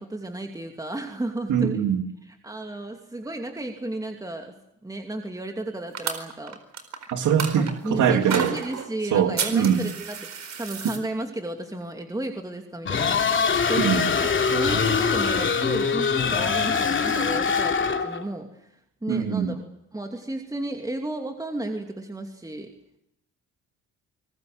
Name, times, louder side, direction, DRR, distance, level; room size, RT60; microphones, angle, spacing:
voice 1, 0.0-1.8 2.4-4.5 4.8-6.6 7.6-18.7 19.0-19.6 19.9-22.7, right 1 dB, 10° right, 4 dB, 2.7 m, -33 dB
voice 2, 1.5-2.0 7.1-8.5 9.1-9.8 13.8-14.1 19.1-19.6, right 8 dB, 75° right, 7 dB, 2.6 m, -22 dB
sound 1, 5.9-7.7 8.3-8.9 9.4-11.0, right 7 dB, 60° right, 4.4 m, -31 dB
sound 2, 12.9-18.2, left 5 dB, 40° left, 2.9 m, -23 dB
26.5 x 20.5 x 8.0 m, 0.79 s
cardioid pair, 90°, 30 cm